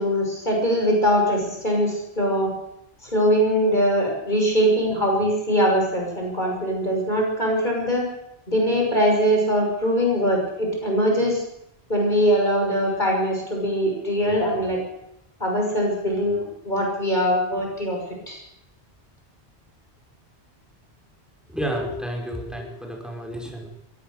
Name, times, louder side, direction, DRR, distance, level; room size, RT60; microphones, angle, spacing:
voice 1, 0.0-2.5 3.0-8.0 8.5-11.4 11.9-14.8 15.4-18.0 18.3-18.4, equal, 45° left, 0 dB, 6.6 m, -22 dB
voice 2, 21.5-23.7, equal, ahead, 1 dB, 5.1 m, -30 dB
22.5 x 17.5 x 6.7 m, 0.79 s
omnidirectional pair, 1.1 m